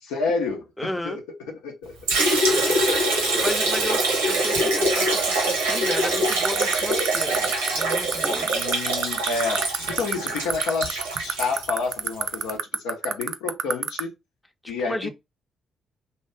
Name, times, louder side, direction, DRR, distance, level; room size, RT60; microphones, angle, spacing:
voice 1, 0.0-2.0 2.5-3.4 3.8-4.0 8.5-14.1 14.7-15.1, left 4 dB, 75° left, 0.6 m, -30 dB
voice 2, 0.8-1.2 3.4-8.5 14.9-15.1, left 1 dB, 10° left, 0.6 m, -33 dB
Liquid, 2.1-12.2, right 1 dB, 85° right, 0.8 m, -24 dB
sound 1, 6.3-14.0, right 8 dB, 60° right, 0.3 m, -23 dB
2.8 x 2.3 x 3.2 m
hypercardioid pair, 40°, 0 cm